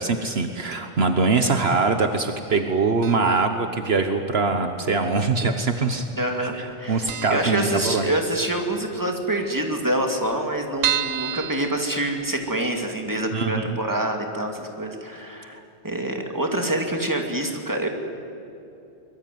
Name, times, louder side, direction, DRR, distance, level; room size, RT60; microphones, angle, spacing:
voice 1, 0.0-6.0 6.4-8.1 13.3-13.8 15.5-15.6, right 4 dB, 65° right, 7 dB, 1.4 m, -23 dB
sound 1, 3.0-3.6 3.8-3.9 4.8-5.5 5.8-6.0 6.3-6.4 6.7-6.8 7.1-8.4 8.8-8.9 9.1-9.2 9.4-9.5 10.0-12.7 13.1-13.2 13.6-13.7, right 10 dB, 90° right, 1.1 m, -30 dB
voice 2, 6.2-15.6 15.8-17.9, right 1 dB, 15° right, 3 dB, 2.6 m, -26 dB
24.0 x 21.5 x 9.4 m, 2.7 s
omnidirectional pair, 1.1 m